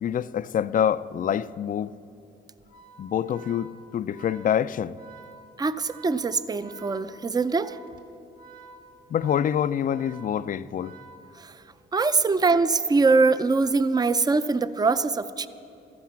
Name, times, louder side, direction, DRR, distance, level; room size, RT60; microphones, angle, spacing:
voice 1, 0.0-1.9 3.0-5.0 9.1-10.9, left 9 dB, 45° left, 0.4 m, -26 dB
Organ, 2.6-11.7, right 3 dB, 45° right, 1.8 m, -50 dB
voice 2, 5.6-7.8 11.4-11.5 11.9-15.5, right 4 dB, 20° right, 0.5 m, -23 dB
14.0 x 11.0 x 7.4 m
cardioid pair, 90°, 20 cm